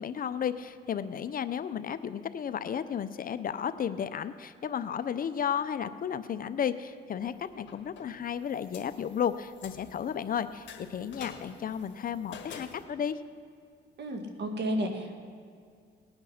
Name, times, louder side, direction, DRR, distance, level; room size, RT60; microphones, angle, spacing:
voice 1, 0.0-13.2, left 8 dB, 45° left, 13 dB, 0.5 m, -33 dB
sound 1, 7.2-12.8, left 7 dB, 70° left, 1.5 m, -49 dB
voice 2, 14.0-15.1, equal, 60° right, 4 dB, 1.8 m, -32 dB
19.0 x 8.8 x 5.7 m, 2.1 s
cardioid pair, 90°, 20 cm